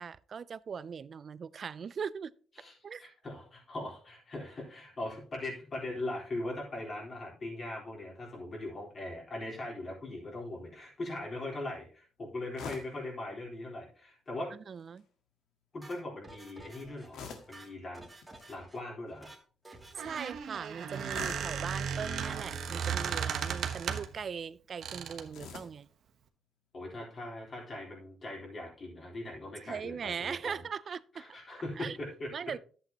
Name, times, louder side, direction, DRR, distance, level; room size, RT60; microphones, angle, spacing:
voice 1, 0.0-2.3 2.8-3.0 14.5-15.0 19.7-25.9 29.6-31.2 31.8-32.0 32.3-32.6, right 6 dB, 50° right, 0.4 m, -40 dB
voice 2, 2.6-14.6 15.7-18.1 18.5-19.3 26.7-30.6 31.2-32.5, left 2 dB, 40° left, 3.8 m, -40 dB
sound 1, 12.5-13.0 14.7-15.0 17.1-17.6 18.2-18.5 21.1-21.6 22.9-23.3 25.3-25.9, left 5 dB, 85° left, 1.5 m, -46 dB
sound 2, 15.8-17.1 17.4-18.8 19.1-19.4 19.6-20.5 20.8-21.1 21.3-22.6, right 2 dB, 15° right, 2.3 m, -52 dB
Squeak, 19.8-24.2 24.8-25.3, right 7 dB, 70° right, 1.1 m, -35 dB
11.0 x 8.1 x 2.9 m
cardioid pair, 90°, 0 cm